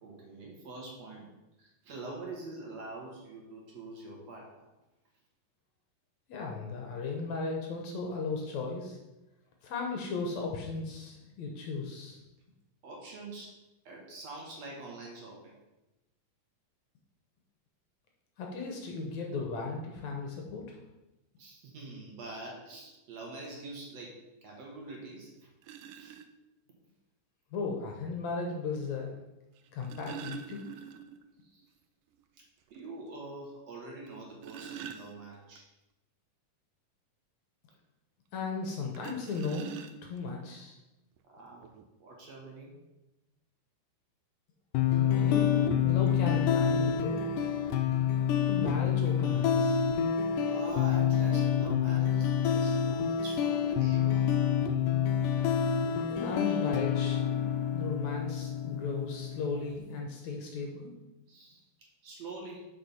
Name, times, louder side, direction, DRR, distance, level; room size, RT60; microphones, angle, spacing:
voice 1, 0.0-1.3 1.6-4.7 12.8-13.5 13.9-15.5 21.4-25.5 25.9-26.1 31.4-31.6 32.7-35.6 41.3-41.7 42.0-42.8 50.4-54.3 56.4-56.6 61.3-61.6 62.0-62.7, right 2 dB, 55° right, -2 dB, 2.5 m, -45 dB
voice 2, 6.3-9.0 9.6-12.2 18.4-20.8 27.5-29.2 29.7-30.7 38.3-39.7 40.0-40.8 45.0-47.2 48.5-49.8 56.1-60.9, left 4 dB, 65° left, 1 dB, 2.1 m, -36 dB
sound 1, 24.9-25.0 25.6-26.3 27.7-27.8 29.6-31.3 31.6-31.7 32.1-32.2 32.7-32.8 34.1-35.6 38.9-40.3 41.2-41.3 41.6-41.8, right 8 dB, 80° right, 2.0 m, -45 dB
sound 2, 44.7-59.8, left 8 dB, 85° left, 2.1 m, -28 dB
6.7 x 5.4 x 5.7 m, 0.98 s
omnidirectional pair, 3.8 m